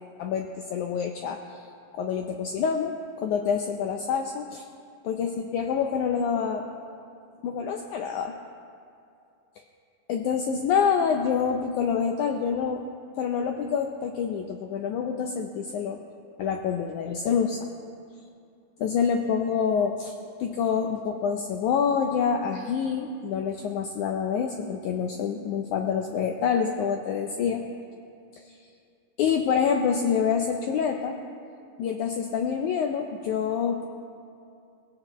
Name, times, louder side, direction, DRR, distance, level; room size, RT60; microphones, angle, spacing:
voice 1, 0.2-1.7 1.9-4.6 5.0-6.7 7.4-8.3 10.1-12.8 13.2-16.0 16.4-17.7 18.8-20.1 20.4-27.6 28.5-28.6 29.2-31.2 31.8-33.9, left 7 dB, 75° left, 4 dB, 1.8 m, -27 dB
20.0 x 16.5 x 3.0 m, 2.5 s
omnidirectional pair, 4.1 m